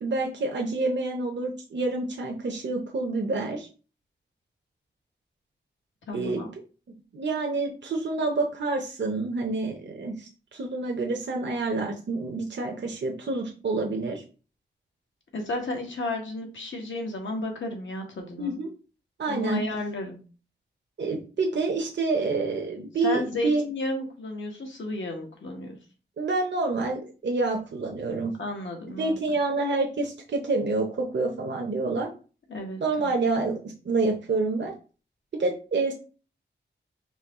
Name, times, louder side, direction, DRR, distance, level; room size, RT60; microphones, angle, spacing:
voice 1, 0.0-3.7 6.1-6.4 7.1-14.2 18.4-18.7 19.2-19.6 21.0-23.6 26.2-28.3 28.9-32.1 32.8-34.7 35.4-35.9, right 3 dB, 70° right, 1 dB, 0.7 m, -28 dB
voice 2, 6.1-6.5 15.3-18.6 19.3-20.2 23.0-25.8 28.4-29.4 32.5-33.1, left 2 dB, 90° left, 1 dB, 1.3 m, -33 dB
4.5 x 2.9 x 3.6 m, 0.36 s
wide cardioid pair, 95°, 19 cm